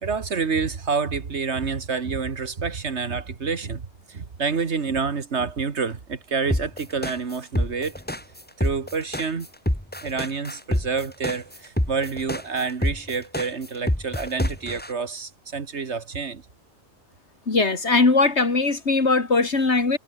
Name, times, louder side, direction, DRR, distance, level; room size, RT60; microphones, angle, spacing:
voice 1, 0.0-8.0 8.6-9.5 10.0-16.4, right 5 dB, 80° right, 2.0 m, -28 dB
sound 1, 6.5-14.9, left 1 dB, 10° left, 2.5 m, -26 dB
voice 2, 17.5-20.0, left 3 dB, 80° left, 3.2 m, -20 dB
omnidirectional pair, 1.1 m